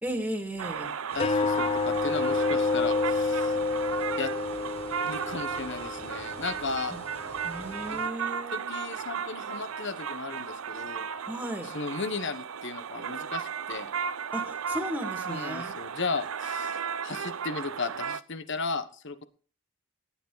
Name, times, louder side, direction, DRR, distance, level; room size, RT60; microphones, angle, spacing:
voice 1, 0.0-0.9 6.9-7.0 7.4-8.7 11.3-11.7 14.3-15.7, right 1 dB, 5° right, 4 dB, 2.3 m, -35 dB
sound 1, 0.6-18.2, right 7 dB, 85° right, 0.6 m, -35 dB
voice 2, 1.1-3.6 4.2-4.3 5.0-6.9 7.9-8.0 8.5-11.1 11.6-13.9 15.3-19.2, left 4 dB, 60° left, 11 dB, 1.3 m, -35 dB
sound 2, 1.1-8.1, left 3 dB, 30° left, 0.7 m, -29 dB
17.0 x 9.9 x 4.1 m, 0.41 s
head